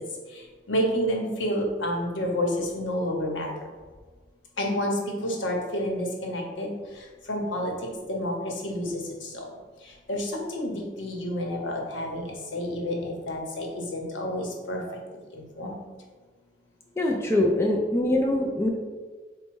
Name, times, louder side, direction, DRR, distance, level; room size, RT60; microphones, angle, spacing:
voice 1, 0.7-3.5 4.6-4.9 5.2-6.7 7.3-7.7 8.1-8.3 8.6-9.0 10.1-12.2 12.5-14.8 15.3-15.7, equal, 85° left, 0 dB, 0.9 m, -29 dB
voice 2, 17.0-18.7, left 1 dB, 15° left, -1 dB, 0.3 m, -23 dB
4.2 x 2.2 x 4.5 m, 1.4 s
head